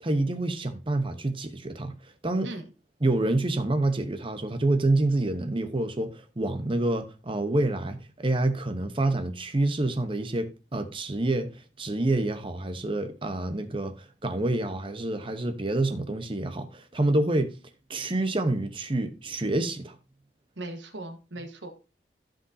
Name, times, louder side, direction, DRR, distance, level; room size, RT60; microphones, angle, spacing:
voice 1, 0.0-2.5 3.0-11.5 11.8-17.5 17.9-20.0, right 2 dB, 30° right, 0.9 m, -27 dB
voice 2, 20.6-21.7, right 1 dB, 85° right, 1.4 m, -38 dB
14.5 x 5.1 x 2.7 m
head